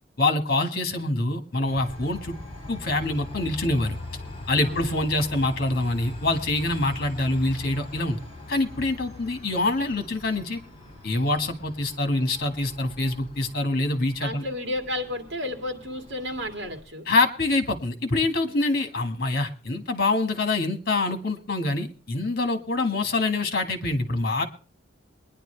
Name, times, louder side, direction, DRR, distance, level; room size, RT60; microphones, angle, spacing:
voice 1, 0.2-2.3 2.7-4.0 4.5-8.2 8.5-10.6 11.0-14.4 17.1-24.5, left 2 dB, 55° left, 7 dB, 1.7 m, -25 dB
Train, 1.7-16.8, left 2 dB, 30° left, 6.0 m, -41 dB
voice 2, 4.6-5.1 14.2-17.0, left 1 dB, 65° right, 4 dB, 2.2 m, -32 dB
22.5 x 10.5 x 3.3 m, 0.38 s
head